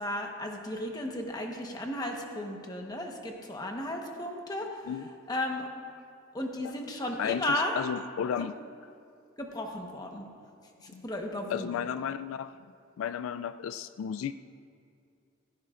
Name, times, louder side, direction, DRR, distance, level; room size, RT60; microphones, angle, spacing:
voice 1, 0.0-4.9 5.3-5.7 6.3-7.8 9.4-10.2 10.8-11.7, left 1 dB, 20° left, 2 dB, 1.1 m, -34 dB
voice 2, 7.2-8.5 10.9-11.0 11.5-12.5 13.0-14.3, left 8 dB, 75° left, 13 dB, 0.3 m, -33 dB
16.0 x 15.5 x 2.5 m, 2.4 s
head